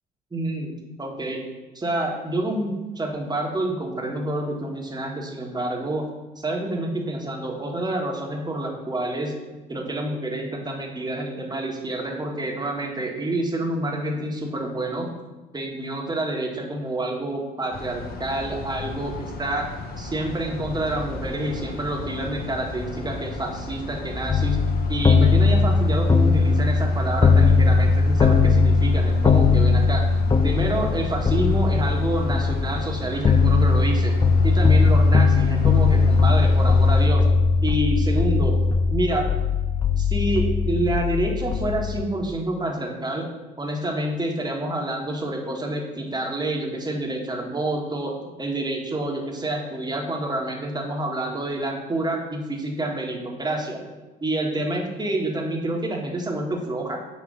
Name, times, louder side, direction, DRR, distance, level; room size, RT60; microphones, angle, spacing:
voice 1, 0.3-1.4 1.7-6.1 6.4-9.3 9.7-15.1 15.5-19.7 20.0-24.6 24.9-30.0 30.4-34.1 34.4-37.3 37.6-38.6 38.9-39.3 40.0-43.3 43.6-53.8 54.2-57.0, right 1 dB, 20° right, 1 dB, 1.4 m, -28 dB
sound 1, 17.7-37.1, left 2 dB, 55° left, 0.8 m, -35 dB
sound 2, 24.3-42.0, left 4 dB, 20° left, 0.5 m, -19 dB
6.4 x 3.1 x 4.8 m, 1.1 s
hypercardioid pair, 55°, 19 cm